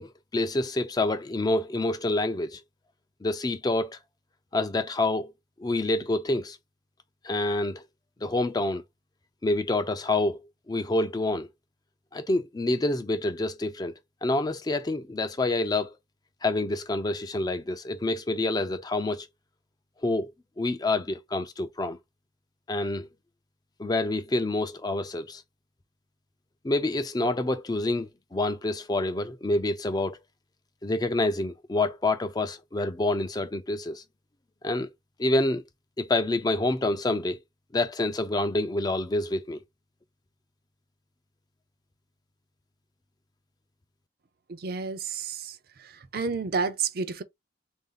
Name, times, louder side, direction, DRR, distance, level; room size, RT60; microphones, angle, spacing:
voice 1, 0.0-2.6 3.2-4.0 4.5-5.3 5.6-6.6 7.2-7.8 8.2-8.8 9.4-11.5 12.1-16.0 16.4-19.3 20.0-20.3 20.6-22.0 22.7-23.1 23.8-25.4 26.6-30.2 30.8-34.0 34.6-34.9 35.2-35.6 36.0-37.4 37.7-39.6, left 2 dB, 20° left, 0.4 m, -27 dB
voice 2, 44.5-47.2, right 5 dB, 55° right, 0.5 m, -31 dB
3.5 x 2.6 x 3.9 m
head